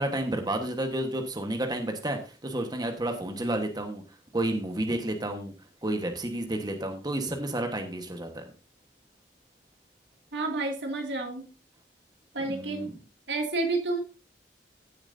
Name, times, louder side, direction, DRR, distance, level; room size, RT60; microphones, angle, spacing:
voice 1, 0.0-4.0 4.3-5.5 5.8-8.4 12.5-12.9, right 1 dB, 25° right, 5 dB, 1.3 m, -31 dB
voice 2, 10.3-11.5 12.3-12.9 13.3-14.0, right 2 dB, 85° right, 3 dB, 2.4 m, -30 dB
16.0 x 7.1 x 2.7 m, 0.31 s
head